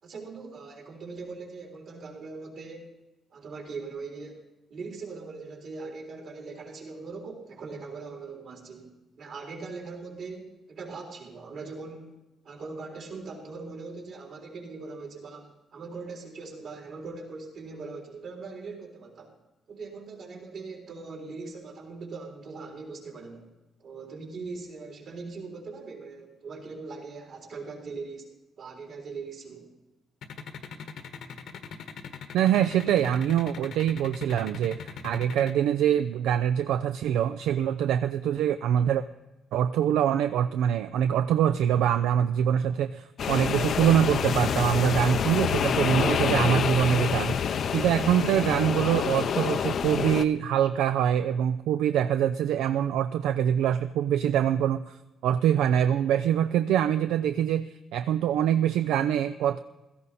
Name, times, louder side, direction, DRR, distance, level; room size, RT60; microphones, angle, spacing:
voice 1, 0.0-2.9 3.3-4.4 4.7-12.1 12.4-19.3 19.7-23.5 23.8-28.3 28.6-29.7, right 4 dB, 65° right, -1 dB, 3.8 m, -41 dB
sound 1, 30.2-35.5, left 7 dB, 75° left, 1.4 m, -40 dB
voice 2, 32.3-39.0 39.5-55.0 55.2-59.6, right 10 dB, 90° right, 11 dB, 0.4 m, -24 dB
sound 2, 43.2-50.2, left 7 dB, 60° left, 0.5 m, -27 dB
16.0 x 14.0 x 4.1 m, 1.0 s
cardioid pair, 90°, 0 cm